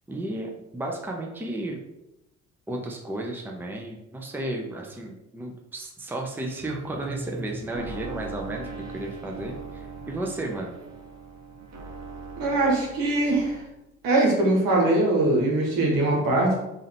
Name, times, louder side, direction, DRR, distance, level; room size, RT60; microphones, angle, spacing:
voice 1, 0.1-1.8 2.7-10.7, right 1 dB, 5° right, 0 dB, 0.7 m, -33 dB
sound 1, 6.6-13.6, right 3 dB, 45° right, 0.9 m, -39 dB
voice 2, 12.4-13.6 14.0-16.5, right 2 dB, 65° right, -2 dB, 1.3 m, -22 dB
3.7 x 2.7 x 3.4 m, 0.92 s
hypercardioid pair, 50°, 38 cm